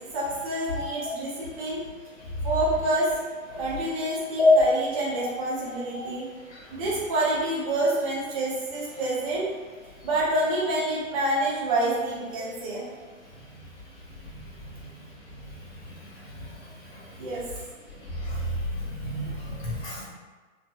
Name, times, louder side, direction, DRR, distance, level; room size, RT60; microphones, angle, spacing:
voice 1, 0.1-1.8 2.4-3.1 3.6-6.3 6.7-9.5 10.0-12.8 17.2-17.4, right 1 dB, 25° right, -6 dB, 0.5 m, -27 dB
voice 2, 18.8-20.0, left 3 dB, 45° left, -7 dB, 0.8 m, -28 dB
2.9 x 2.5 x 2.2 m, 1.3 s
figure-of-eight pair, 115°, 41 cm